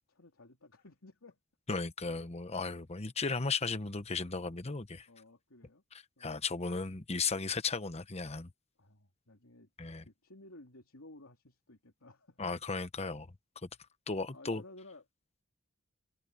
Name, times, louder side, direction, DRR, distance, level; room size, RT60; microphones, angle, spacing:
voice 1, 0.1-1.4 5.1-5.8 6.2-6.5 8.8-9.7 10.0-12.4 14.3-15.0, left 2 dB, 85° left, 3.1 m, -56 dB
voice 2, 1.7-5.1 6.2-8.5 9.8-10.0 12.4-13.3 14.1-14.6, left 4 dB, 30° left, 1.0 m, -35 dB
head